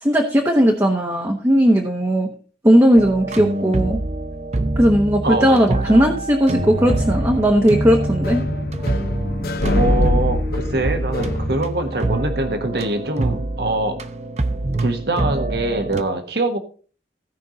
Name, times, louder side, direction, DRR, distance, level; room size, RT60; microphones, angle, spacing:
voice 1, 0.0-2.3 2.6-4.0 4.8-8.4, equal, 15° right, 1 dB, 1.0 m, -17 dB
sound 1, 3.0-16.0, right 2 dB, 40° right, 0.7 m, -25 dB
voice 2, 5.2-6.0 9.7-14.0 14.8-16.6, right 2 dB, 60° right, 6 dB, 1.4 m, -23 dB
sound 2, 6.5-11.5, left 1 dB, 55° left, 1.0 m, -24 dB
16.0 x 5.5 x 3.9 m, 0.39 s
head